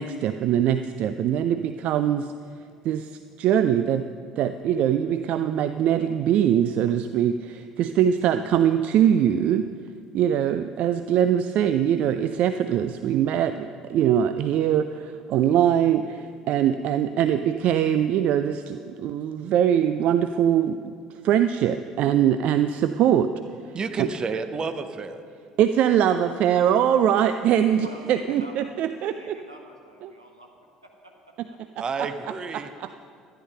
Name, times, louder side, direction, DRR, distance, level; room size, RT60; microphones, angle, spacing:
voice 1, 0.0-2.3 2.8-4.1 4.4-9.7 10.1-20.9 21.2-23.3 23.9-24.1 25.6-29.4 30.0-30.1 32.0-32.1 32.5-32.9, right 9 dB, 50° right, 10 dB, 0.4 m, -22 dB
voice 2, 23.7-25.2 31.8-32.7, right 4 dB, 30° right, 9 dB, 0.8 m, -30 dB
voice 3, 27.8-28.7 29.2-30.5 30.8-31.1, right 1 dB, 85° right, 2 dB, 1.4 m, -44 dB
13.0 x 10.5 x 5.4 m, 2.2 s
figure-of-eight pair, 60°, 3 cm